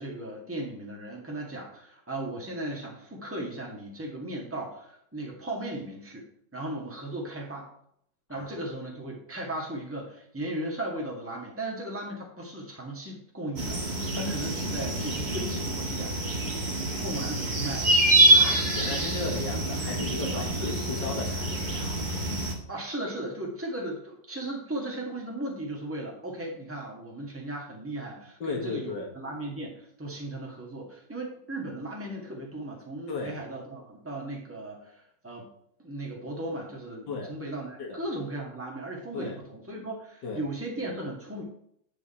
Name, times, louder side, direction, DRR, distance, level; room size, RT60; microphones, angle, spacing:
voice 1, 0.0-6.3 6.5-7.7 8.3-16.6 17.0-17.9 20.3-20.7 22.7-35.5 35.8-41.4, right 1 dB, 5° right, -1 dB, 1.9 m, -36 dB
sound 1, 13.6-22.5, right 1 dB, 25° right, 1.4 m, -26 dB
voice 2, 18.3-22.0 28.4-29.1 33.1-33.4 37.1-37.3 37.8-38.0 39.1-39.4 40.2-40.4, left 3 dB, 75° left, -1 dB, 2.4 m, -35 dB
9.4 x 5.5 x 4.4 m, 0.69 s
omnidirectional pair, 1.9 m